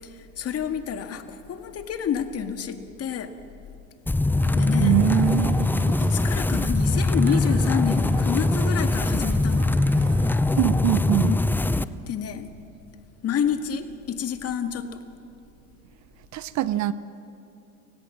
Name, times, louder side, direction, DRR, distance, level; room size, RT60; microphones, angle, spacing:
voice 1, 0.0-3.3 4.5-5.0 5.7-9.7 11.2-11.5 12.1-12.5 13.2-14.9, left 8 dB, 40° left, 7 dB, 1.9 m, -29 dB
sound 1, 4.1-11.8, left 2 dB, 5° left, 0.5 m, -22 dB
sound 2, 4.4-10.5, right 9 dB, 75° right, 1.7 m, -41 dB
voice 2, 4.8-5.7 10.6-11.3 16.3-16.9, right 13 dB, 45° right, 16 dB, 0.9 m, -23 dB
30.0 x 17.0 x 7.4 m, 2.8 s
hypercardioid pair, 95°, 39 cm